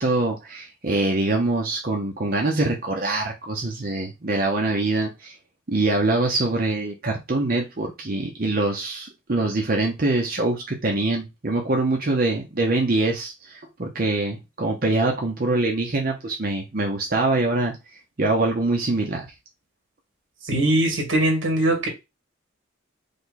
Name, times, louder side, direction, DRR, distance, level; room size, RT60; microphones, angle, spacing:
voice 1, 0.0-5.3 5.7-17.7 18.2-19.3, right 2 dB, 45° right, 0.8 m, -24 dB
voice 2, 20.4-21.9, right 1 dB, 60° right, 2.1 m, -21 dB
5.1 x 2.3 x 4.1 m
head